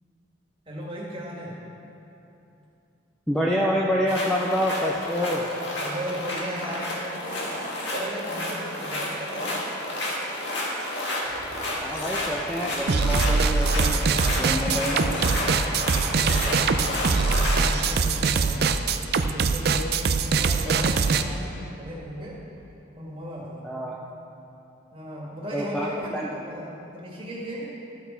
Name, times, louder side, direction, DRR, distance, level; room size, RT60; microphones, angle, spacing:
voice 1, 0.7-1.6 5.7-9.7 14.2-22.4 23.0-23.7 24.9-27.7, equal, 25° right, -4 dB, 2.0 m, -37 dB
voice 2, 3.3-5.5 11.8-14.1 14.4-15.1 23.6-24.0 25.5-26.3, equal, 5° left, -4 dB, 0.6 m, -27 dB
sound 1, 4.1-17.9, left 1 dB, 55° left, 1.9 m, -31 dB
sound 2, 11.2-17.3, left 1 dB, 35° left, 2.5 m, -41 dB
sound 3, 12.9-21.2, right 4 dB, 50° right, 0.4 m, -23 dB
13.5 x 8.3 x 4.4 m, 2.9 s
head